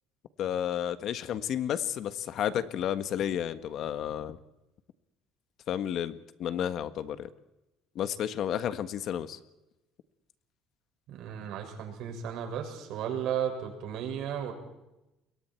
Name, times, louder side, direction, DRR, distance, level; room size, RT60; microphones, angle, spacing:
voice 1, 0.4-4.4 5.7-7.3 7.9-9.4, left 10 dB, 55° left, 12 dB, 1.4 m, -32 dB
voice 2, 11.1-14.5, right 9 dB, 70° right, 3 dB, 6.3 m, -34 dB
28.5 x 22.5 x 4.6 m, 0.95 s
cardioid pair, 125°, 0 cm